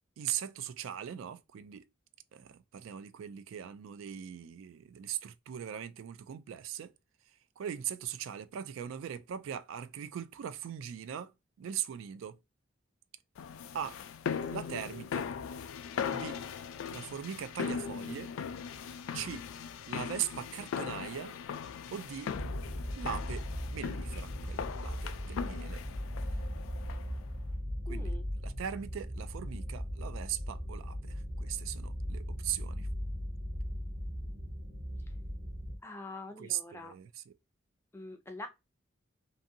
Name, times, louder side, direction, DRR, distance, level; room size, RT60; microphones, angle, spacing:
voice 1, 0.2-1.9 2.3-6.9 7.6-11.3 11.6-12.4 13.7-14.0 14.5-15.3 16.1-16.4 16.9-18.3 19.1-19.5 19.9-21.3 21.9-22.3 23.0-23.4 23.7-25.8 27.9-28.1 28.4-32.9 36.4-37.3, right 9 dB, 80° right, 0.3 m, -40 dB
sound 1, 13.4-27.2, left 7 dB, 90° left, 0.3 m, -39 dB
sound 2, 22.3-35.8, equal, 40° right, 0.6 m, -38 dB
voice 2, 27.9-28.2 35.8-36.9 37.9-38.5, left 2 dB, 10° left, 0.4 m, -44 dB
2.6 x 2.6 x 2.6 m
head